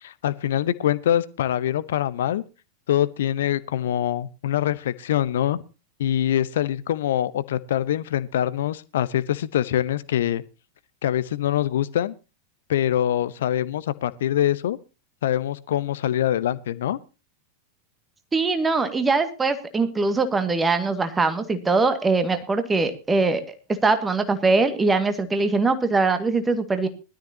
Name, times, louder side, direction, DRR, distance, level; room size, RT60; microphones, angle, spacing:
voice 1, 0.0-2.4 2.9-5.6 6.0-10.4 11.0-12.1 12.7-14.8 15.2-17.0, left 11 dB, 60° left, 0.9 m, -24 dB
voice 2, 18.3-23.4 23.8-26.9, right 3 dB, 15° right, 2.0 m, -22 dB
20.5 x 13.0 x 2.9 m
figure-of-eight pair, 90°, 0 cm